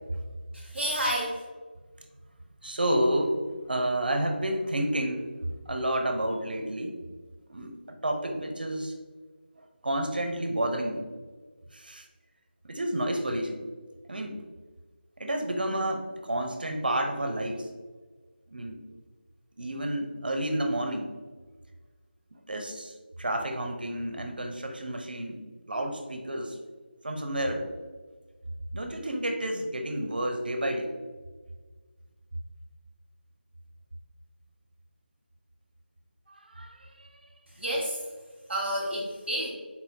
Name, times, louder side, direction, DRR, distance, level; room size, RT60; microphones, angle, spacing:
voice 1, 0.5-1.4 37.5-38.0 38.5-39.5, equal, ahead, -15 dB, 0.3 m, -30 dB
voice 2, 2.6-3.4 3.7-5.3 5.7-6.9 7.5-8.9 9.8-11.0 11.7-12.1 12.6-13.6 14.1-14.4 15.2-17.7 18.5-18.8 19.6-21.1 22.3-25.4 25.7-26.6 27.0-27.7 28.7-31.0 36.3-37.2, right 1 dB, 55° right, 4 dB, 0.7 m, -30 dB
4.2 x 4.1 x 2.7 m, 1.4 s
figure-of-eight pair, 165°, 6 cm